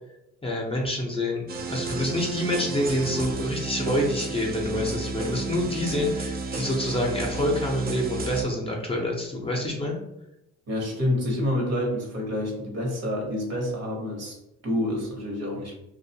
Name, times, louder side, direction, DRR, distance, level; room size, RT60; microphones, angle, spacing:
voice 1, 0.4-10.0, left 1 dB, 20° left, -1 dB, 0.5 m, -27 dB
sound 1, 1.5-8.4, right 3 dB, 30° right, 0.4 m, -32 dB
voice 2, 10.7-14.4 14.6-15.7, left 1 dB, 55° right, 0 dB, 1.0 m, -28 dB
2.4 x 2.2 x 2.7 m, 0.87 s
cardioid pair, 90°, 30 cm